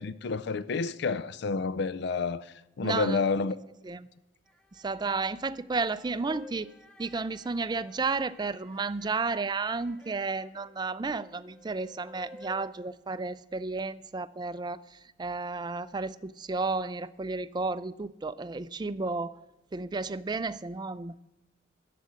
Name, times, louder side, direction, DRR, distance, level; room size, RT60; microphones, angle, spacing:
voice 1, 0.0-3.6, left 4 dB, 60° left, 0.4 m, -29 dB
voice 2, 2.8-3.2 3.8-4.1 4.7-6.7 7.0-19.4 19.7-21.2, right 3 dB, 25° right, 0.4 m, -32 dB
sound 1, 4.5-5.1 5.7-12.7, left 1 dB, 5° left, 0.9 m, -53 dB
10.5 x 7.5 x 8.4 m
head